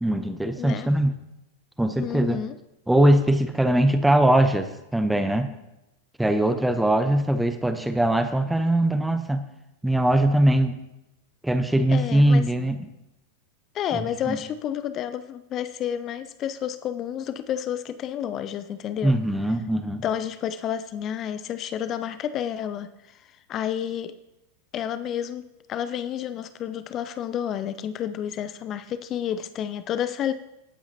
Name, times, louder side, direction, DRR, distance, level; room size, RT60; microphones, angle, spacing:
voice 1, 0.0-1.1 1.8-2.4 2.9-5.5 6.2-9.4 9.8-10.7 11.4-12.8 13.9-14.4 19.0-20.0, right 1 dB, 5° right, 8 dB, 0.9 m, -21 dB
voice 2, 0.6-0.9 2.0-2.5 11.9-12.4 13.7-19.2 20.0-24.1 24.7-25.4 25.7-30.3, left 9 dB, 30° left, 12 dB, 0.6 m, -30 dB
20.0 x 8.7 x 2.9 m, 0.91 s
figure-of-eight pair, 90°, 0 cm